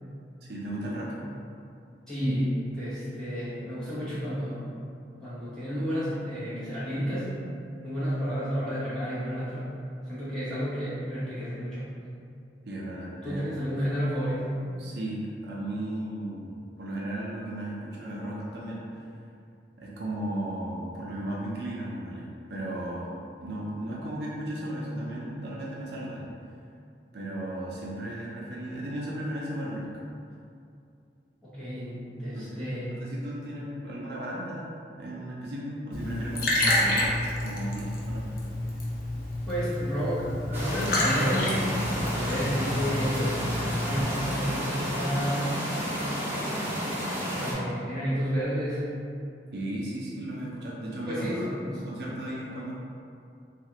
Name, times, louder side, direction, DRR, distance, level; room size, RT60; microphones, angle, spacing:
voice 1, 0.4-1.1 12.6-13.4 14.8-16.5 16.8-19.0 19.8-26.3 27.1-29.9 32.3-32.6 32.9-34.7 35.0-38.2 49.5-51.4 51.7-52.7, right 1 dB, 65° right, -5 dB, 0.5 m, -35 dB
voice 2, 2.1-4.6 5.2-7.3 7.8-9.6 10.1-11.9 13.2-14.6 31.4-33.0 39.5-41.6 41.9-43.4 43.8-45.6 47.4-49.0 51.0-51.8, equal, 5° left, -13 dB, 1.0 m, -31 dB
Liquid, 35.9-44.0, left 1 dB, 55° left, 0.6 m, -29 dB
sound 1, 40.5-47.5, equal, 10° right, 0.7 m, -31 dB
3.1 x 2.4 x 2.8 m, 2.5 s
head